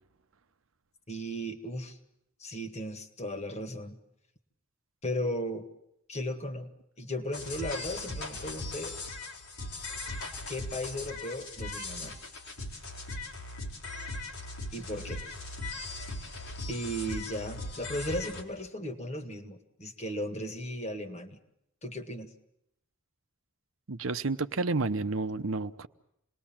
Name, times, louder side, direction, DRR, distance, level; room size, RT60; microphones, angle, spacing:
voice 1, 1.1-2.0 2.4-4.0 5.0-5.7 6.1-6.7 7.0-9.0 10.5-12.2 14.7-15.2 16.7-21.4 21.8-22.3, equal, 30° left, 1.9 m, -36 dB
sound 1, 7.3-18.4, left 2 dB, 85° left, 3.9 m, -39 dB
voice 2, 23.9-25.9, right 3 dB, 65° right, 0.9 m, -30 dB
27.5 x 20.5 x 7.4 m
head